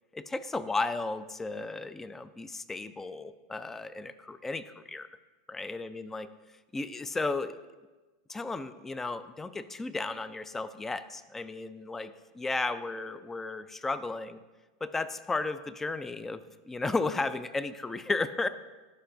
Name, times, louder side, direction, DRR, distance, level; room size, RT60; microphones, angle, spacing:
voice 1, 0.1-5.1 5.5-6.3 6.7-7.6 8.3-14.4 14.8-16.4 16.7-18.5, left 3 dB, 10° left, 14 dB, 0.3 m, -34 dB
11.5 x 5.6 x 2.6 m, 1.2 s
supercardioid pair, 125°, 3 cm